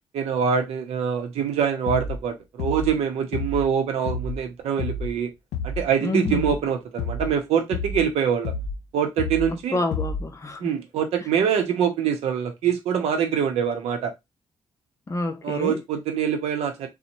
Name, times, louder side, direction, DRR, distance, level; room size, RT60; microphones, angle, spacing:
voice 1, 0.1-5.3 5.6-8.5 8.9-9.8 10.6-14.1 15.4-16.9, right 7 dB, 85° right, 0.7 m, -24 dB
sound 1, 1.9-2.2 2.6-3.0 3.3-3.7 4.1-4.4 4.8-5.2 5.5-5.9 6.2-6.6 7.0-7.4 7.7-8.1 8.4-8.8 9.2-9.5 9.9-10.3, left 4 dB, 90° left, 0.4 m, -30 dB
voice 2, 6.0-6.6 9.7-10.7 15.1-15.8, left 2 dB, 30° left, 0.6 m, -28 dB
2.9 x 2.1 x 2.6 m
cardioid pair, 70°, 10 cm